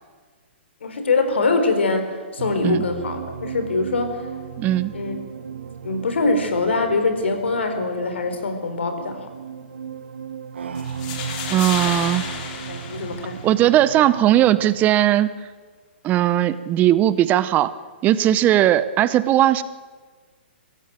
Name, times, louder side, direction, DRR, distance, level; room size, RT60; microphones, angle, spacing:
voice 1, 0.8-4.3 4.9-5.2 5.8-9.3 12.7-13.4, left 3 dB, 75° left, 8 dB, 4.3 m, -23 dB
sound 1, 2.4-15.1, right 7 dB, 75° right, 1.4 m, -36 dB
voice 2, 4.6-4.9 11.5-12.3 13.4-15.3 16.0-17.7 18.0-19.6, right 12 dB, 25° right, 15 dB, 0.8 m, -18 dB
sound 2, 10.8-13.8, left 6 dB, 45° left, 3.8 m, -32 dB
24.0 x 15.5 x 9.0 m, 1.5 s
hypercardioid pair, 130°, 6 cm